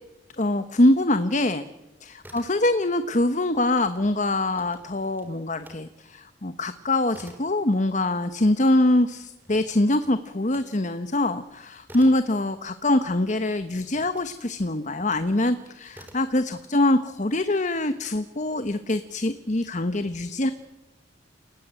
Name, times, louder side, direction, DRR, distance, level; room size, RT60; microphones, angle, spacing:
voice 1, 0.4-1.6 2.3-20.5, left 1 dB, 40° left, 10 dB, 1.1 m, -24 dB
sound 1, 2.2-3.0 3.3-5.8 6.2-13.2 13.9-15.4 15.9-16.4, right 1 dB, 10° right, 3.9 m, -51 dB
29.0 x 18.5 x 9.0 m, 1.0 s
head